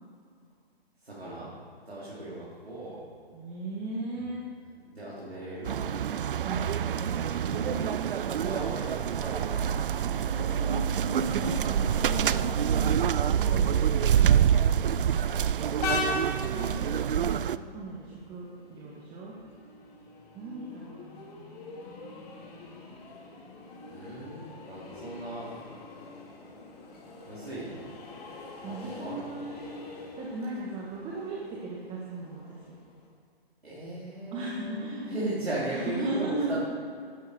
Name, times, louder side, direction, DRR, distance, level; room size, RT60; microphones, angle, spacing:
voice 1, 1.0-1.5 1.9-3.0 4.8-5.9 8.3-9.8 23.9-25.5 27.3-27.9 28.6-29.5 30.1-30.2 33.6-36.6, right 1 dB, 85° right, -9 dB, 3.7 m, -37 dB
voice 2, 3.3-4.4 6.4-7.9 10.0-13.8 16.5-19.3 20.3-21.4 28.6-29.6 30.2-32.7 34.3-35.2 35.7-36.6, right 2 dB, 20° right, -4 dB, 1.7 m, -37 dB
sound 1, 5.6-17.6, right 9 dB, 60° right, 0.5 m, -26 dB
Train, 15.8-33.1, left 3 dB, 40° left, 2.8 m, -41 dB
12.0 x 12.0 x 5.1 m, 2.3 s
figure-of-eight pair, 130°, 31 cm